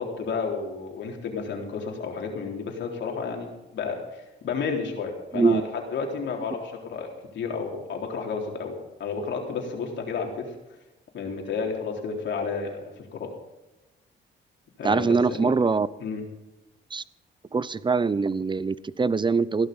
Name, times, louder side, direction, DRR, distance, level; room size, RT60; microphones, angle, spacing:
voice 1, 0.0-10.5 11.1-13.3 14.8-15.6 16.0-16.2, left 5 dB, 65° left, 1 dB, 3.8 m, -32 dB
voice 2, 14.8-15.9 16.9-17.0 17.5-19.7, right 4 dB, 25° right, 18 dB, 0.7 m, -23 dB
16.0 x 11.5 x 5.5 m, 1.0 s
cardioid pair, 90°, 20 cm